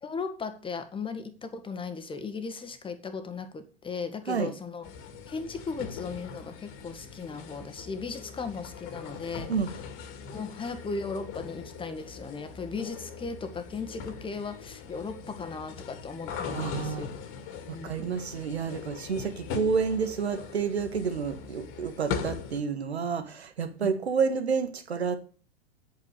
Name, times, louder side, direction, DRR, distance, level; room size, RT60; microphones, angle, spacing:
voice 1, 0.0-4.9 5.3-9.5 10.3-17.2 17.7-18.2 23.8-24.0, left 4 dB, 15° left, 1.7 m, -37 dB
sound 1, 4.8-22.6, left 6 dB, 40° left, 2.3 m, -40 dB
voice 2, 16.5-17.1 17.7-25.2, right 6 dB, 80° right, 1.8 m, -29 dB
9.4 x 8.5 x 6.7 m
figure-of-eight pair, 100°, 32 cm